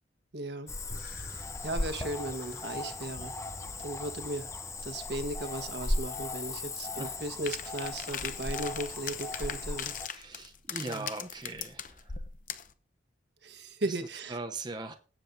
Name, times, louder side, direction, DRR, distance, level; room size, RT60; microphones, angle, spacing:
voice 1, 0.3-0.7 1.3-3.3 3.8-4.5 4.8-9.9 10.9-11.1 13.4-14.4, right 1 dB, 65° right, 8 dB, 1.4 m, -36 dB
Cricket / Frog, 0.7-10.1, left 2 dB, 15° left, 0.7 m, -37 dB
sound 1, 0.9-4.3, left 1 dB, 75° left, 3.1 m, -48 dB
sound 2, 7.5-12.7, left 8 dB, 45° left, 0.8 m, -39 dB
voice 2, 10.1-12.2 13.9-14.0 14.3-15.0, right 3 dB, 20° right, 5 dB, 0.8 m, -40 dB
17.0 x 7.7 x 2.7 m, 0.35 s
head